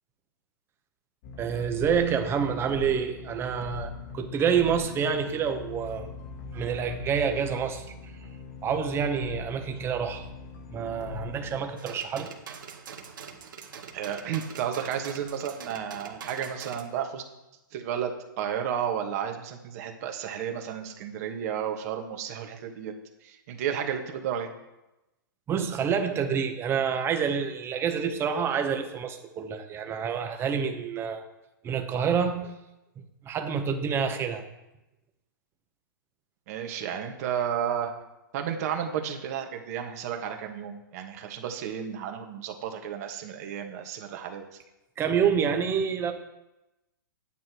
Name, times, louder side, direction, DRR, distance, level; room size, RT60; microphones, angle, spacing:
sound 1, 1.2-11.6, left 5 dB, 50° left, 2.1 m, -41 dB
voice 1, 1.4-6.1 6.5-7.8 8.6-10.2 10.7-12.3 25.5-31.2 31.6-32.5 33.2-34.4 45.0-46.1, right 7 dB, 20° right, 6 dB, 1.4 m, -27 dB
sound 2, 11.8-16.8, right 7 dB, 70° right, 1.9 m, -44 dB
voice 2, 13.9-17.2 17.7-22.9 23.2-24.5 36.5-37.9 38.3-44.6, right 8 dB, 50° right, 3 dB, 2.1 m, -32 dB
9.5 x 9.5 x 4.7 m, 0.96 s
hypercardioid pair, 125°, 11 cm